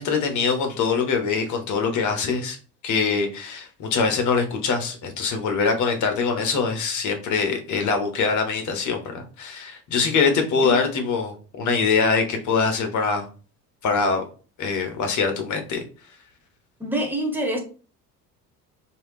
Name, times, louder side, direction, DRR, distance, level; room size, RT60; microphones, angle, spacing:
voice 1, 0.0-2.6 2.8-13.3 13.8-14.2 14.6-15.8, left 5 dB, 35° left, 0.9 m, -23 dB
voice 2, 16.8-17.6, equal, 5° right, 0.8 m, -26 dB
3.3 x 2.7 x 3.0 m
figure-of-eight pair, 60°, 49 cm